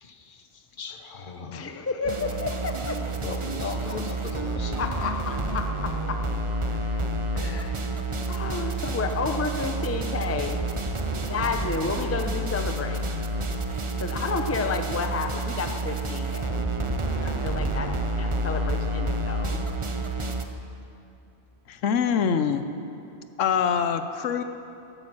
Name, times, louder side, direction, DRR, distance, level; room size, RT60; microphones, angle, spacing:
voice 1, 0.0-0.4 0.8-1.7 3.2-4.8 17.8-17.9, left 4 dB, 45° left, 7 dB, 1.1 m, -37 dB
voice 2, 1.5-3.0 4.5-6.2 6.7-7.0 7.3-7.9 8.3-10.6 11.2-13.0 14.0-16.6 17.1-17.9 18.2-19.6, left 4 dB, 15° left, 5 dB, 0.6 m, -31 dB
sound 1, 2.0-20.5, right 2 dB, 30° right, 0.7 m, -29 dB
voice 3, 21.7-22.6 23.4-24.4, left 7 dB, 85° left, 10 dB, 1.1 m, -24 dB
14.5 x 12.0 x 6.2 m, 2.8 s
omnidirectional pair, 1.2 m